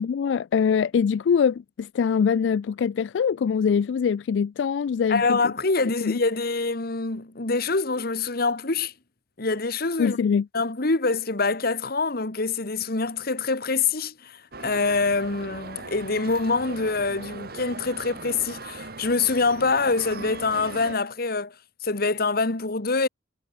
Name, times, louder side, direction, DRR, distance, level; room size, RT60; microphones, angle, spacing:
voice 1, 0.0-5.5 6.0-6.2 10.0-10.5, left 6 dB, 80° left, 0.3 m, -23 dB
voice 2, 5.1-8.9 9.4-10.2 10.5-21.5 21.8-23.1, left 3 dB, 55° left, 1.6 m, -25 dB
sound 1, 14.5-21.0, right 3 dB, 60° right, 3.2 m, -39 dB
head